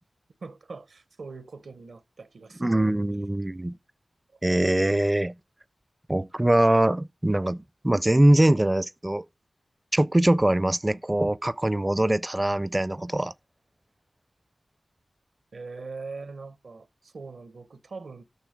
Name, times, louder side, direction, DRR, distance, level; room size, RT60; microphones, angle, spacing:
voice 1, 0.4-3.0 3.7-3.8 15.5-18.2, right 4 dB, 80° right, 0.8 m, -42 dB
voice 2, 2.6-3.8 4.4-5.3 6.1-9.2 9.9-13.3, right 1 dB, 20° right, 0.4 m, -22 dB
9.3 x 6.5 x 5.0 m
cardioid pair, 55°, 0 cm